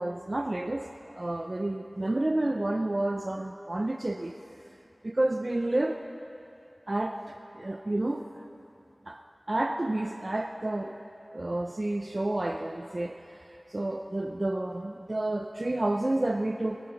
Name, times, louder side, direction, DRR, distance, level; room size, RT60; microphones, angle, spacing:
voice 1, 0.0-4.3 5.0-6.0 6.9-8.5 9.1-10.9 11.3-13.4 13.7-16.8, right 1 dB, 45° right, 5 dB, 0.5 m, -30 dB
22.0 x 18.0 x 3.4 m, 2.8 s
wide cardioid pair, 55°, 0 cm